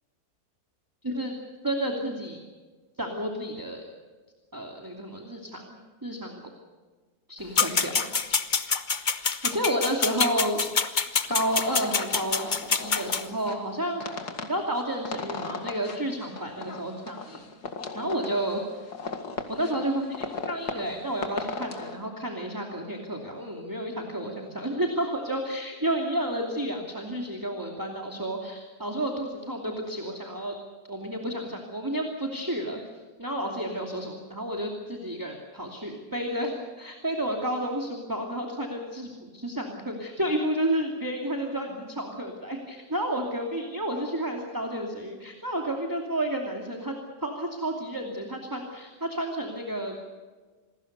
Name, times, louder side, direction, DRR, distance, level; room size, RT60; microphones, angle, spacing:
voice 1, 1.0-1.4 1.6-2.4 3.0-3.8 4.5-5.8 6.0-6.4 7.3-8.1 9.4-10.6 11.3-17.4 17.9-18.6 19.5-30.5 30.9-32.8 33.2-50.1, right 1 dB, 10° right, 1 dB, 2.7 m, -31 dB
sound 1, 7.6-13.2, left 5 dB, 35° left, 1.1 m, -26 dB
sound 2, 11.3-22.0, left 4 dB, 75° left, 2.6 m, -38 dB
27.5 x 20.5 x 6.8 m, 1.4 s
omnidirectional pair, 1.7 m